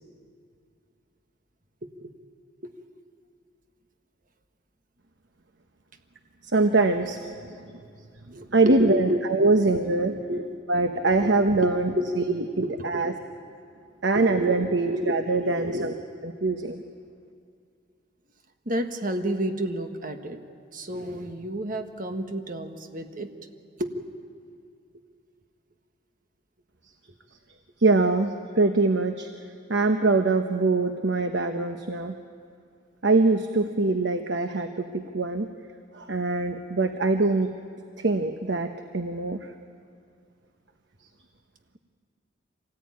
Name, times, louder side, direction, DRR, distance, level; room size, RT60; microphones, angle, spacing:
voice 1, 1.8-2.1 2.6-2.7 8.3-9.6 10.3-10.5 11.2-13.1 14.1-14.6 14.8-15.1 15.5-15.9 18.6-20.4 20.7-23.3 23.8-24.0, equal, 45° right, 6 dB, 1.6 m, -31 dB
voice 2, 6.4-7.2 8.5-10.2 10.7-11.9 12.6-13.1 14.0-15.9 16.4-16.8 27.8-29.3 29.7-32.2 33.0-35.5 35.9-37.5 38.0-39.4, right 3 dB, 75° right, 7 dB, 1.1 m, -23 dB
25.0 x 18.5 x 9.6 m, 2.3 s
head